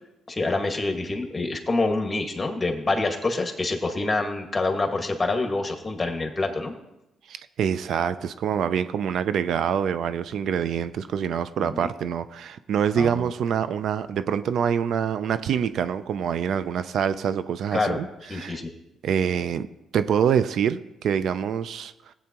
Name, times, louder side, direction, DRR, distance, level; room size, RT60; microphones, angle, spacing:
voice 1, 0.3-6.7 11.6-11.9 13.0-13.3 17.7-18.0 18.3-18.7, left 2 dB, 20° left, 3 dB, 1.8 m, -26 dB
voice 2, 7.3-18.1 18.3-18.6 19.0-19.7 19.9-22.1, right 8 dB, 70° right, 13 dB, 0.4 m, -25 dB
16.5 x 8.4 x 3.0 m, 0.93 s
cardioid pair, 90°, 0 cm